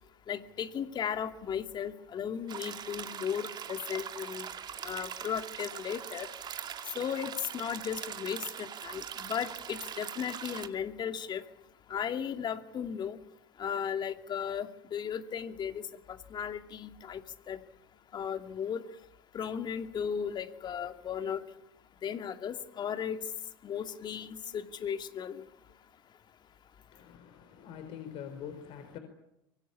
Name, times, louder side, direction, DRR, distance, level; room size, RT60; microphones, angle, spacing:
voice 1, 0.3-4.5 4.8-6.3 7.0-11.4 11.9-13.2 13.6-15.8 16.1-17.2 17.5-17.6 18.1-18.8 19.3-21.4 22.0-23.2 23.6-25.4, left 8 dB, 40° left, 7 dB, 2.5 m, -36 dB
sound 1, 2.5-10.7, right 8 dB, 35° right, 2.4 m, -42 dB
voice 2, 26.9-29.0, left 8 dB, 55° left, 7 dB, 4.3 m, -44 dB
24.5 x 24.0 x 8.7 m, 0.85 s
hypercardioid pair, 80°, 12 cm